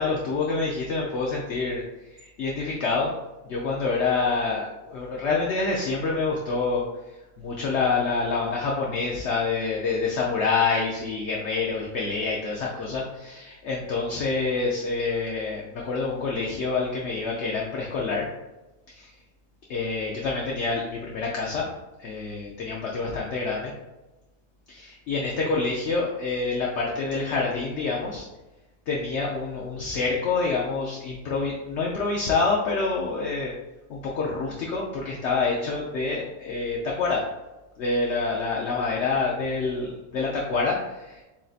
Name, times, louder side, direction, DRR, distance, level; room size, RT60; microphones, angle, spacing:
voice 1, 0.0-1.8 2.1-3.1 3.5-6.8 7.4-18.3 18.9-19.1 19.7-21.7 22.0-23.7 24.7-28.3 28.9-33.5 33.9-37.2 37.8-41.2, left 4 dB, 60° left, -3 dB, 0.8 m, -27 dB
7.3 x 2.6 x 2.4 m, 1.0 s
omnidirectional pair, 1.6 m